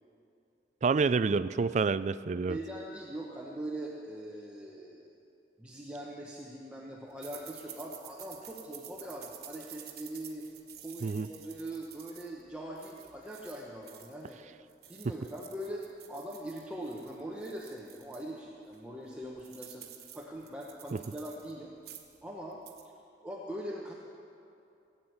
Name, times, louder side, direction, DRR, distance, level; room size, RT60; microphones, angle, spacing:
voice 1, 0.8-2.6 11.0-11.3, right 4 dB, 40° right, 15 dB, 0.3 m, -28 dB
voice 2, 2.5-5.2 5.6-10.5 10.8-14.4 14.9-19.9 20.1-21.7 22.2-22.6 23.2-23.9, right 1 dB, 5° right, -3 dB, 1.0 m, -42 dB
sound 1, 7.2-14.4 14.7-18.3 18.7-18.8 19.1-21.5 21.8-22.2 22.5-22.9, right 10 dB, 60° right, 1.4 m, -51 dB
17.0 x 8.9 x 7.9 m, 2.7 s
head